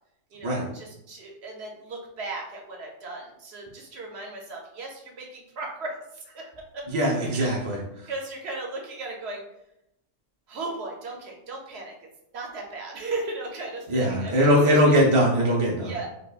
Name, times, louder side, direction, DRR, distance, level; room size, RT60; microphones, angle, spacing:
voice 1, 0.3-7.7 8.1-9.4 10.5-11.9 12.3-15.0 15.8-16.1, right 2 dB, 60° right, 0 dB, 0.8 m, -36 dB
voice 2, 6.9-8.1 13.9-15.9, equal, 45° right, -3 dB, 0.4 m, -21 dB
5.0 x 2.2 x 2.3 m, 0.83 s
omnidirectional pair, 1.3 m